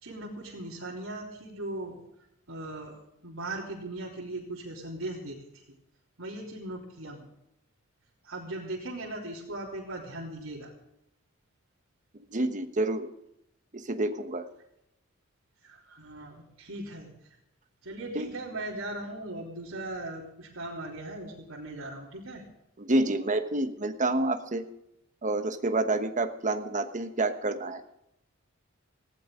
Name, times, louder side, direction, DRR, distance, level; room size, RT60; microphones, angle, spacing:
voice 1, 0.0-2.0 2.5-2.9 3.2-5.6 6.2-7.3 8.2-10.7 15.6-17.1 17.8-22.4, right 1 dB, 85° right, -6 dB, 3.5 m, -38 dB
voice 2, 12.1-13.1 13.7-14.5 18.1-18.3 22.8-24.7 25.2-27.8, right 2 dB, 40° right, 8 dB, 1.2 m, -28 dB
19.0 x 15.5 x 3.8 m, 0.81 s
head